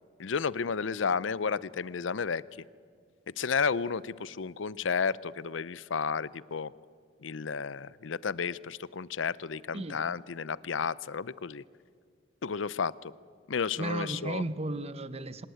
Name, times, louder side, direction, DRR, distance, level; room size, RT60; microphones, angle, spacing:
voice 1, 0.2-2.4 3.4-6.7 7.2-11.6 12.4-13.1 13.5-14.4, left 5 dB, 80° left, 0.6 m, -32 dB
voice 2, 13.8-15.5, right 2 dB, 35° right, 0.9 m, -34 dB
25.0 x 19.5 x 9.3 m
head